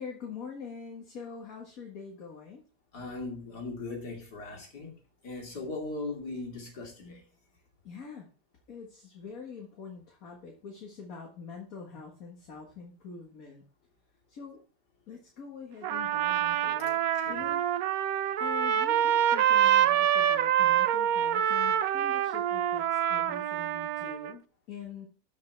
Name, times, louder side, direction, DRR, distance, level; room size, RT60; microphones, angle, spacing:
voice 1, 0.0-2.6 7.8-8.3 8.7-13.6 14.3-14.6 15.1-17.0 17.3-17.6 18.4-25.1, left 5 dB, 60° left, 1 dB, 2.2 m, -44 dB
voice 2, 2.9-4.9 5.2-7.2 16.8-17.4, left 3 dB, 80° left, 1 dB, 3.2 m, -39 dB
Trumpet, 15.8-24.3, right 10 dB, 70° right, 1.1 m, -26 dB
13.5 x 5.8 x 4.6 m, 0.40 s
omnidirectional pair, 1.7 m